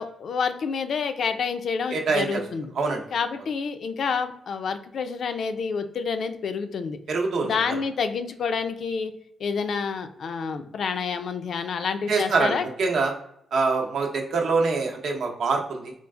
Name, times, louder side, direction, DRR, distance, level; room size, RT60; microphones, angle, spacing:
voice 1, 0.0-2.7 3.1-7.0 7.4-9.1 9.4-12.7, left 5 dB, 65° left, 8 dB, 0.3 m, -28 dB
voice 2, 1.9-2.4 2.7-3.0 7.1-7.8 12.1-13.1 13.5-15.9, right 4 dB, 75° right, 1 dB, 0.7 m, -24 dB
3.8 x 2.4 x 2.3 m, 0.72 s
cardioid pair, 125°, 0 cm